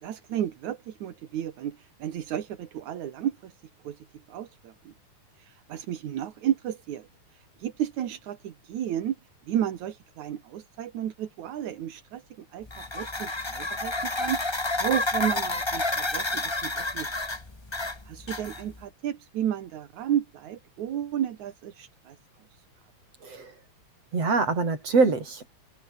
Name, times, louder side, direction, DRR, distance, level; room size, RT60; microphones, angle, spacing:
voice 1, 0.0-3.5 3.8-4.9 5.4-9.2 9.5-14.4 14.8-17.1 18.1-22.2, right 10 dB, 80° right, 3.1 m, -32 dB
sound 1, 12.7-18.8, left 2 dB, 20° left, 0.7 m, -30 dB
voice 2, 23.2-23.5 24.1-25.5, right 4 dB, 55° right, 6.5 m, -24 dB
omnidirectional pair, 3.3 m